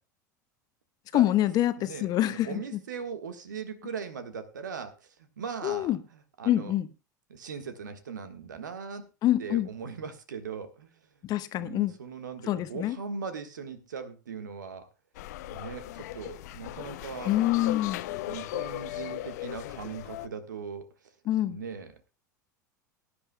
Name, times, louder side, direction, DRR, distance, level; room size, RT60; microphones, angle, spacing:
voice 1, 1.1-2.6 5.6-6.0 6.4-6.9 9.2-9.7 11.2-11.9 12.5-13.0 17.3-18.0 21.3-21.6, left 14 dB, 40° left, 1.0 m, -26 dB
voice 2, 1.8-6.7 7.3-9.1 9.4-11.1 11.6-14.9 15.5-17.3 18.1-20.9 21.4-22.0, right 6 dB, 75° right, 1.5 m, -39 dB
sound 1, 15.1-20.3, left 16 dB, 60° left, 0.6 m, -37 dB
21.0 x 10.0 x 2.2 m
figure-of-eight pair, 80°, 10 cm